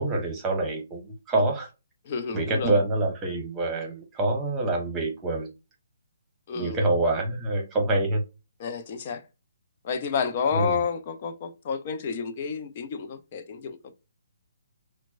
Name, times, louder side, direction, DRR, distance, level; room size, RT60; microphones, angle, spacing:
voice 1, 0.0-1.7 2.3-5.5 6.5-8.2 10.5-10.8, right 2 dB, 15° right, 1.2 m, -26 dB
voice 2, 2.1-2.7 6.5-6.8 8.6-9.2 9.8-13.8, left 6 dB, 40° left, 0.7 m, -30 dB
5.9 x 2.3 x 2.5 m
figure-of-eight pair, 135°, 0 cm